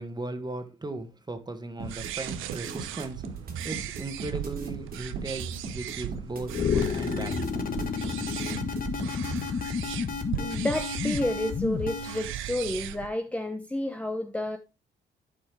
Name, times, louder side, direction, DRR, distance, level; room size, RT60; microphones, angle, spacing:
voice 1, 0.0-3.2 3.6-7.4, right 2 dB, 20° right, 1.6 m, -37 dB
sound 1, 1.8-9.4, right 4 dB, 50° right, 2.4 m, -38 dB
sound 2, 1.8-13.1, right 11 dB, 85° right, 0.7 m, -38 dB
sound 3, 6.5-12.3, left 6 dB, 45° left, 1.4 m, -30 dB
voice 2, 10.4-14.6, left 1 dB, 5° left, 0.8 m, -30 dB
11.5 x 5.2 x 3.4 m
cardioid pair, 90°, 20 cm